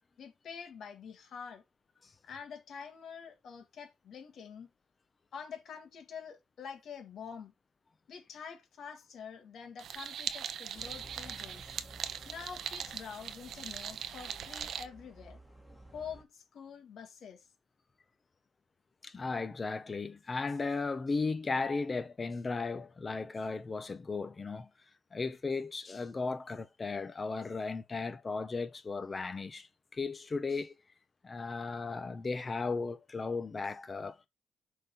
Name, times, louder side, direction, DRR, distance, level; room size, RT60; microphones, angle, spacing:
voice 1, 0.2-1.6 2.2-4.7 5.3-7.5 8.1-11.8 12.2-15.4 15.9-17.5, left 6 dB, 65° left, 2.0 m, -46 dB
sound 1, 9.8-14.8, right 9 dB, 65° right, 0.7 m, -40 dB
sound 2, 10.7-16.2, right 1 dB, ahead, 1.8 m, -54 dB
voice 2, 19.0-24.7 25.1-30.7 31.2-34.3, left 4 dB, 30° left, 1.0 m, -36 dB
6.5 x 3.9 x 4.5 m
cardioid pair, 90°, 0 cm